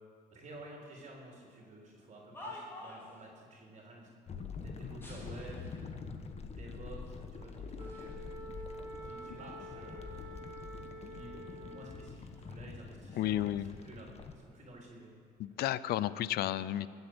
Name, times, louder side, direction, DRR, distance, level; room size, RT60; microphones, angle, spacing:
voice 1, 0.3-4.3 4.6-8.2 9.0-10.1 11.0-15.1, right 2 dB, 40° right, -1 dB, 3.7 m, -52 dB
sound 1, 1.9-3.2 4.9-5.9 6.6-6.7 7.5-8.2 8.6-10.1 10.4-12.1 12.3-14.5 15.2-15.5, left 1 dB, 15° left, 3.8 m, -53 dB
sound 2, 4.3-14.3, left 5 dB, 40° left, 1.3 m, -46 dB
Wind instrument woodwind instrument, 7.8-12.1, right 1 dB, 20° right, 2.9 m, -47 dB
voice 2, 13.2-13.7 15.4-16.9, left 13 dB, 70° left, 17 dB, 0.6 m, -32 dB
20.5 x 8.1 x 8.0 m, 2.2 s
cardioid pair, 110°, 17 cm